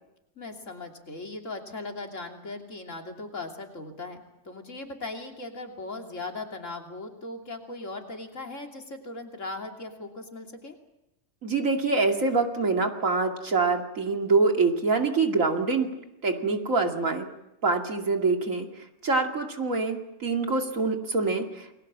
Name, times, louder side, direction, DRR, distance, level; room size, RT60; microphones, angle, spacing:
voice 1, 0.4-4.2 4.4-10.7, left 2 dB, 55° left, 3 dB, 3.3 m, -38 dB
voice 2, 11.4-17.3 17.6-21.8, right 3 dB, 60° right, 4 dB, 2.9 m, -25 dB
29.0 x 21.5 x 7.5 m, 0.91 s
omnidirectional pair, 1.5 m